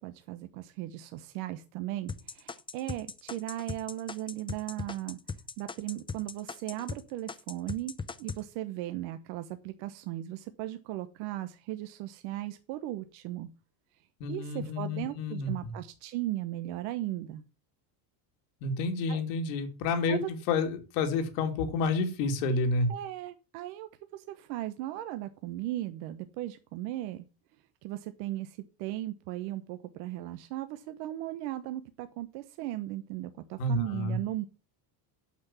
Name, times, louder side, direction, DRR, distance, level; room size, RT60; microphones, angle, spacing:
voice 1, 0.0-5.2 5.6-13.5 14.3-17.4 19.1-19.2 20.1-20.3 22.9-27.3 27.8-34.4, right 15 dB, 80° right, 10 dB, 1.1 m, -37 dB
sound 1, 2.1-7.0 7.3-8.4, left 4 dB, 10° left, 0.6 m, -38 dB
voice 2, 14.2-15.7 18.6-22.9 33.6-34.2, left 3 dB, 85° left, 6 dB, 2.7 m, -29 dB
8.6 x 6.1 x 7.1 m, 0.33 s
cardioid pair, 130°, 47 cm